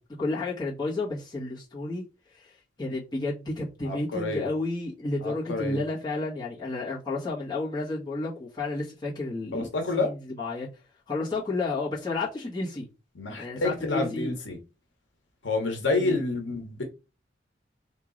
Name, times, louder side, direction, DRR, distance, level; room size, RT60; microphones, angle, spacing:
voice 1, 0.2-2.0 2.8-9.7 10.0-10.7 11.1-12.9 13.4-14.3 16.0-16.2, left 2 dB, 25° left, 1.4 m, -31 dB
voice 2, 3.8-4.5 5.2-5.8 9.5-10.1 13.1-14.6 15.4-16.8, left 3 dB, 85° left, 1.0 m, -28 dB
3.1 x 2.9 x 3.8 m
head